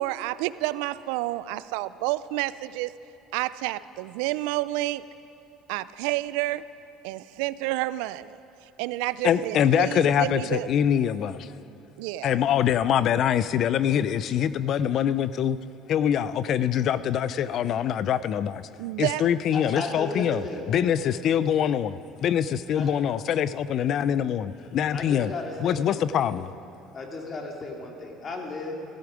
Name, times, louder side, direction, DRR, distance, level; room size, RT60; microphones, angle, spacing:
voice 1, 0.0-2.9 3.3-5.1 5.7-6.6 7.0-8.4 8.8-10.7 12.0-12.4 18.8-19.2, right 17 dB, 85° right, 17 dB, 0.4 m, -29 dB
voice 2, 9.2-11.5 12.2-15.6 15.9-18.6 19.0-20.4 20.7-25.3 25.6-26.5, left 9 dB, 50° left, 16 dB, 0.5 m, -24 dB
voice 3, 19.5-21.2 22.7-22.9 24.9-26.3 26.9-28.7, left 3 dB, 35° left, 1 dB, 2.2 m, -35 dB
15.0 x 14.0 x 5.1 m, 2.9 s
cardioid pair, 115°, 0 cm